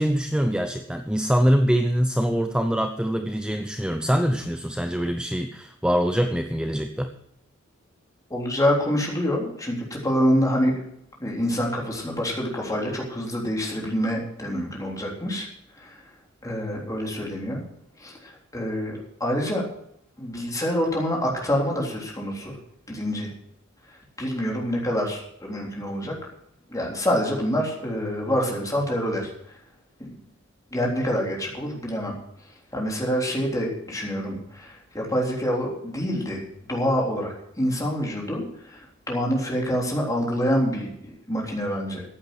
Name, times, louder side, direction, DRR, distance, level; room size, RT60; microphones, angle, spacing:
voice 1, 0.0-7.1, equal, 5° right, 6 dB, 0.7 m, -24 dB
voice 2, 8.3-10.8 11.2-15.5 15.8-16.0 16.4-17.6 18.0-19.6 20.2-22.6 22.9-23.3 24.2-26.1 26.7-29.3 30.0-30.1 30.7-32.2 32.7-36.4 36.7-40.9 41.3-42.0, equal, 15° left, -2 dB, 3.5 m, -26 dB
14.5 x 8.7 x 6.1 m, 0.74 s
head